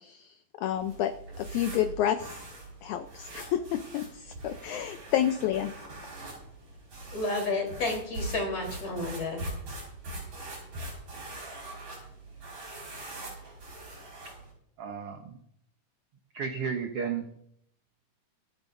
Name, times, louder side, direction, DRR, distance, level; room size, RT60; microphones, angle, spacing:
voice 1, 0.0-2.4 2.8-5.7, left 11 dB, 75° left, 8 dB, 1.8 m, -30 dB
sound 1, 0.7-14.5, right 2 dB, 50° right, 6.4 m, -42 dB
voice 2, 7.1-9.4, left 2 dB, 45° left, 1 dB, 4.6 m, -31 dB
voice 3, 14.8-15.4 16.3-17.4, right 6 dB, 70° right, 4 dB, 1.4 m, -33 dB
25.0 x 9.8 x 2.6 m, 0.71 s
omnidirectional pair, 4.0 m